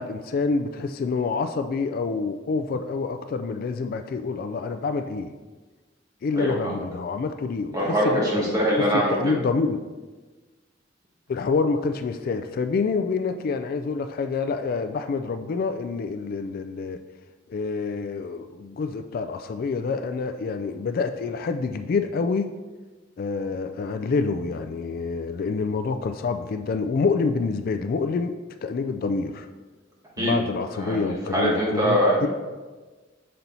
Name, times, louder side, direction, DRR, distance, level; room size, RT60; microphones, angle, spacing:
voice 1, 0.0-5.3 6.2-8.5 8.8-8.9 9.1-9.8 11.3-17.0 17.5-22.5 23.2-28.3 28.6-29.5 30.2-32.3, left 4 dB, 50° left, 8 dB, 0.3 m, -27 dB
voice 2, 6.3-6.8 7.7-9.4 30.2-30.4 30.7-32.3, equal, 20° right, -5 dB, 1.7 m, -23 dB
6.8 x 4.3 x 4.0 m, 1.3 s
head